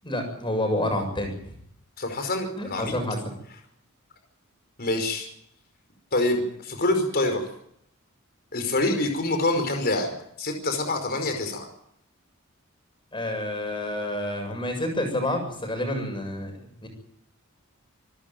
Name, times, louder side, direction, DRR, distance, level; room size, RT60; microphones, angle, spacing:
voice 1, 0.0-1.3 2.6-3.2 13.1-16.9, left 1 dB, 25° left, 5 dB, 7.5 m, -28 dB
voice 2, 2.0-3.0 4.8-5.3 6.1-7.4 8.5-10.1 10.4-11.7, left 2 dB, 50° left, 5 dB, 5.1 m, -26 dB
28.0 x 13.5 x 9.1 m, 0.71 s
head